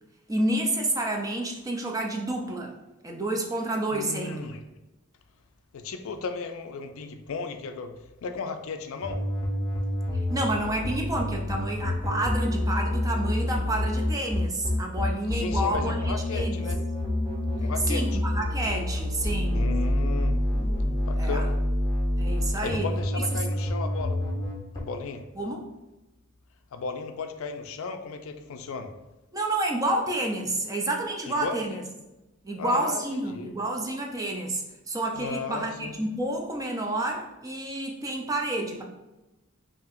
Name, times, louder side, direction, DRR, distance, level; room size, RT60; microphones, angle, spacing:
voice 1, 0.3-2.7 3.0-4.4 10.3-16.6 17.9-19.6 21.2-21.4 22.2-22.9 23.3-23.4 25.4-25.6 29.3-31.8 32.4-38.8, right 1 dB, 15° right, 1 dB, 0.4 m, -29 dB
voice 2, 3.9-4.6 5.7-7.9 8.2-9.2 15.3-16.8 17.6-18.0 19.5-20.4 21.1-21.6 22.6-24.2 24.7-25.2 26.7-28.9 31.3-31.8 32.6-33.5 35.2-35.9, left 4 dB, 70° left, 8 dB, 0.4 m, -35 dB
sound 1, 9.0-24.8, left 1 dB, 15° left, 0.7 m, -27 dB
5.5 x 2.7 x 2.5 m, 1.0 s
head